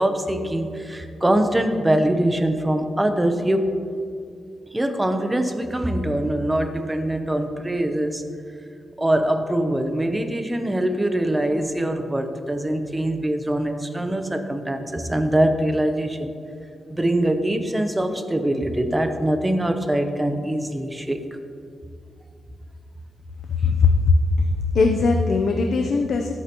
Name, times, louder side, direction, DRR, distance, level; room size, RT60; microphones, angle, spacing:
voice 1, 0.0-3.7 4.7-8.2 9.0-16.3 16.9-21.2 23.6-23.8, right 1 dB, 10° right, 7 dB, 0.7 m, -23 dB
voice 2, 23.5-26.3, left 4 dB, 60° left, 4 dB, 0.6 m, -20 dB
24.5 x 8.5 x 3.0 m, 2.4 s
wide cardioid pair, 175°, 0 cm